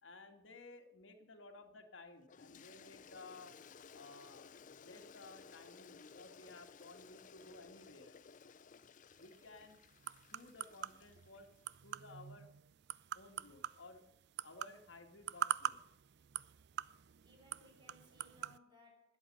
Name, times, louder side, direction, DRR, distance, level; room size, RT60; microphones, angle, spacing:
voice 1, 0.0-3.6 3.9-8.2 9.2-9.8 10.2-11.5 11.8-12.5 13.1-14.0 14.4-15.8, left 3 dB, 85° left, 4 dB, 2.0 m, -56 dB
Toilet flush, 2.3-11.6, left 5 dB, 45° left, 0.5 m, -58 dB
sound 1, 9.1-18.6, right 9 dB, 60° right, 0.4 m, -45 dB
voice 2, 17.2-19.2, left 1 dB, 25° right, 1 dB, 4.5 m, -65 dB
20.0 x 8.0 x 5.5 m, 0.84 s
head